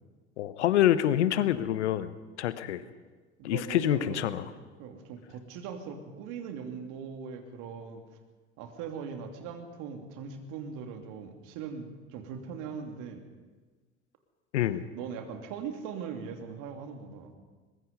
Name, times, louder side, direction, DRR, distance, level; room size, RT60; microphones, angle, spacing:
voice 1, 0.4-2.1 2.4-2.8 3.4-4.5 14.5-14.8, left 12 dB, 75° left, 14 dB, 1.1 m, -26 dB
voice 2, 3.4-4.4 4.8-8.0 8.6-13.2 14.9-17.3, right 6 dB, 60° right, 5 dB, 3.0 m, -40 dB
23.0 x 21.0 x 5.4 m, 1.4 s
hypercardioid pair, 65°, 34 cm